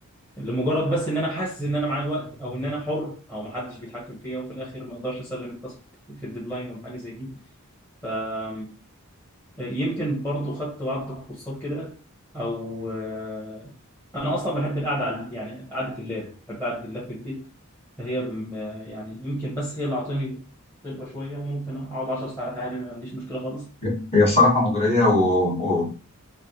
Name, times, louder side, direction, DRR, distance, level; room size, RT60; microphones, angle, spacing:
voice 1, 0.4-5.7 6.1-7.3 8.0-8.7 9.6-11.9 12.3-13.7 14.1-17.5 18.0-20.4 20.8-23.7, equal, 10° left, 1.1 m, -30 dB
voice 2, 23.8-25.9, left 2 dB, 30° left, 1.4 m, -20 dB
3.4 x 2.6 x 2.8 m
head